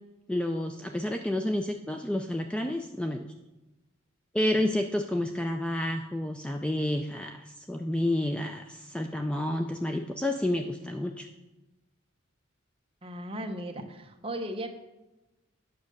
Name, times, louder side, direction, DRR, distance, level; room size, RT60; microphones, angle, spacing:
voice 1, 0.3-3.2 4.3-11.3, left 1 dB, 5° left, 5 dB, 0.4 m, -30 dB
voice 2, 13.0-14.7, right 1 dB, 25° right, 4 dB, 0.9 m, -36 dB
9.5 x 6.3 x 6.5 m, 1.0 s
head